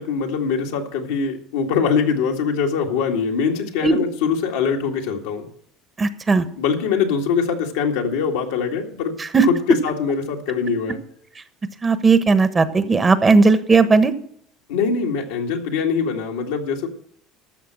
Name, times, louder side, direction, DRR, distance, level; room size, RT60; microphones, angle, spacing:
voice 1, 0.0-5.5 6.6-9.1 9.5-11.0 14.7-16.9, left 6 dB, 80° left, 1 dB, 2.0 m, -23 dB
voice 2, 6.0-6.4 9.3-9.5 11.8-14.1, right 4 dB, 25° right, 11 dB, 1.2 m, -16 dB
13.0 x 6.7 x 7.6 m, 0.65 s
hypercardioid pair, 85°, 0 cm